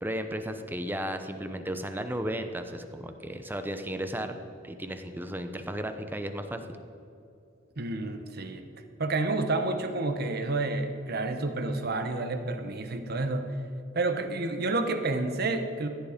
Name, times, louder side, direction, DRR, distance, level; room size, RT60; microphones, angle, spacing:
voice 1, 0.0-4.3 4.6-6.6, equal, 10° right, 7 dB, 0.7 m, -34 dB
voice 2, 7.8-8.7 9.0-13.6 13.9-15.9, right 2 dB, 50° right, 7 dB, 1.0 m, -29 dB
16.0 x 9.7 x 5.1 m, 2.7 s
head